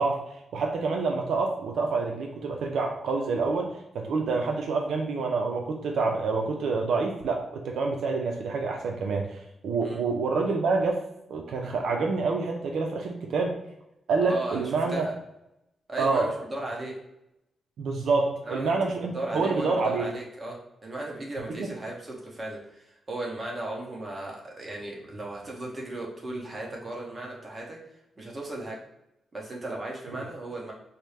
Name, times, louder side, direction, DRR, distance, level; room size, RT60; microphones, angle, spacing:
voice 1, 0.0-11.0 11.3-13.6 14.1-15.1 16.0-16.3 17.8-20.1 21.6-21.7, right 4 dB, 80° right, 2 dB, 0.4 m, -27 dB
voice 2, 14.3-14.6 14.9-15.1 15.9-16.9 18.5-18.8 19.1-20.6 20.8-27.8 28.2-28.8 29.3-30.7, right 1 dB, 30° right, -2 dB, 1.0 m, -36 dB
4.2 x 2.0 x 3.2 m, 0.87 s
cardioid pair, 115°, 0 cm